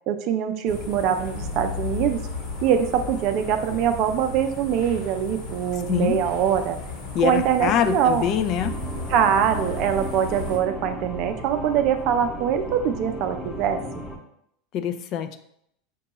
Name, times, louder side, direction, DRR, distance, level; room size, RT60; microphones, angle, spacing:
voice 1, 0.1-2.2 2.6-6.8 7.2-8.3 9.1-13.8, right 8 dB, 55° right, 8 dB, 0.5 m, -23 dB
sound 1, 0.7-10.6, left 2 dB, 70° left, 1.2 m, -34 dB
voice 2, 5.9-6.2 7.1-8.8 14.7-15.4, left 9 dB, 50° left, 9 dB, 0.4 m, -24 dB
sound 2, 8.6-14.2, left 1 dB, 15° left, 0.9 m, -36 dB
5.9 x 2.3 x 3.0 m, 0.72 s
hypercardioid pair, 100°, 0 cm